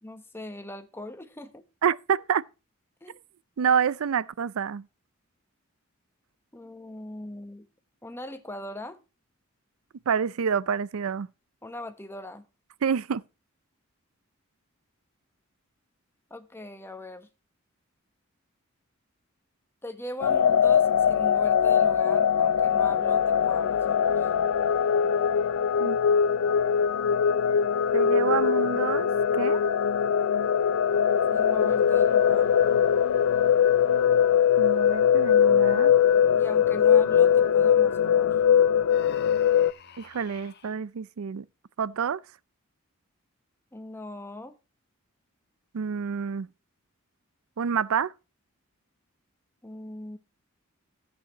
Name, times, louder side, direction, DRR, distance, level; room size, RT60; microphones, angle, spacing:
voice 1, 0.0-1.6 3.0-3.1 6.5-7.7 8.0-9.0 11.6-12.4 16.3-17.3 19.8-24.3 31.3-32.5 36.3-38.4 43.7-44.5 49.6-50.2, left 1 dB, 10° left, 1.0 m, -40 dB
voice 2, 1.8-2.4 3.6-4.8 10.1-11.3 12.8-13.2 25.8-26.0 27.9-29.6 34.6-35.9 40.0-41.4 41.8-42.2 45.7-46.5 47.6-48.1, right 7 dB, 75° right, 0.4 m, -27 dB
sound 1, 20.2-39.7, left 8 dB, 85° left, 0.4 m, -21 dB
Human voice, 38.9-40.8, left 5 dB, 50° left, 0.9 m, -48 dB
13.0 x 8.3 x 2.9 m
head